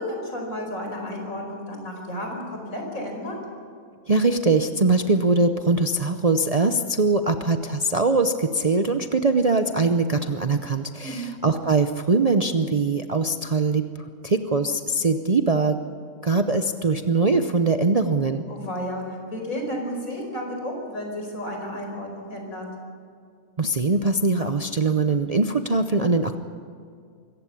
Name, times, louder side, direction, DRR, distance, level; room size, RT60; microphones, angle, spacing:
voice 1, 0.0-3.4 11.0-11.3 18.5-22.7, equal, 70° left, 1 dB, 5.2 m, -32 dB
voice 2, 4.1-13.8 14.2-15.8 16.2-18.4 23.6-26.4, right 3 dB, 35° right, 7 dB, 0.6 m, -22 dB
25.0 x 15.0 x 8.5 m, 2.2 s
omnidirectional pair, 1.5 m